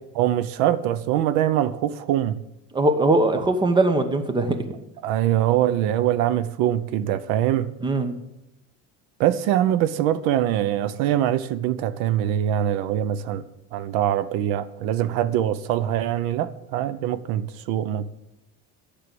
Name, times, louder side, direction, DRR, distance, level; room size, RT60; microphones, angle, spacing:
voice 1, 0.1-2.4 5.0-7.7 9.2-13.4 13.7-18.1, right 11 dB, 75° right, 0.8 m, -23 dB
voice 2, 2.7-4.6 7.8-8.1, right 2 dB, 15° right, 1.0 m, -20 dB
9.8 x 6.7 x 7.6 m
cardioid pair, 140°, 36 cm